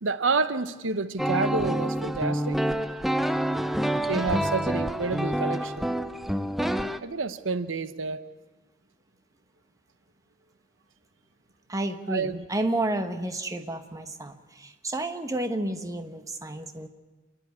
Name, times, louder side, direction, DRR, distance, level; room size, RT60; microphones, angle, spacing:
voice 1, 0.0-2.6 4.1-5.8 7.0-8.2 12.1-12.4, right 4 dB, 90° right, 12 dB, 0.9 m, -29 dB
sound 1, 1.2-7.0, equal, ahead, 0.6 m, -27 dB
voice 2, 11.7-16.9, right 1 dB, 20° right, 7 dB, 1.2 m, -31 dB
28.0 x 11.0 x 9.7 m, 1.2 s
head